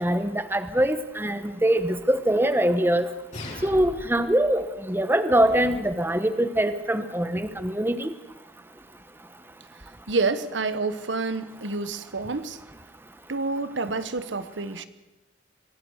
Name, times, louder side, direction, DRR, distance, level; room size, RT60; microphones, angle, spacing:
voice 1, 0.0-3.1 3.6-8.1, right 1 dB, 10° right, 11 dB, 1.0 m, -23 dB
sound 1, 3.3-4.3, left 1 dB, 40° left, 6.0 m, -38 dB
voice 2, 10.1-12.6 13.3-14.9, right 3 dB, 80° right, 13 dB, 1.2 m, -28 dB
25.0 x 17.5 x 6.5 m, 1.0 s
head